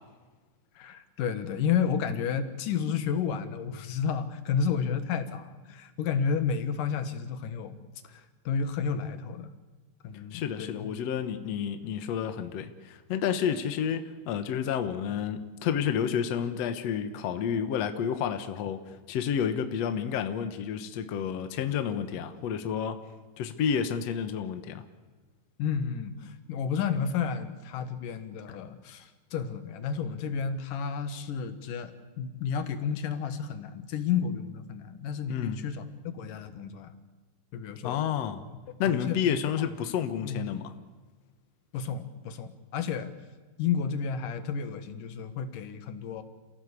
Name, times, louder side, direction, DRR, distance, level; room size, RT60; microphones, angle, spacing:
voice 1, 0.8-7.8 8.0-9.5 10.0-10.9 25.6-36.9 37.5-38.0 38.9-39.4 40.2-40.4 41.7-43.1 43.6-46.2, left 6 dB, 80° left, 9 dB, 3.1 m, -31 dB
voice 2, 10.3-18.8 19.1-23.0 23.4-24.8 35.3-35.6 37.8-38.4 38.8-40.7, left 8 dB, 60° left, 8 dB, 2.2 m, -30 dB
28.0 x 16.0 x 8.3 m, 1.3 s
omnidirectional pair, 3.7 m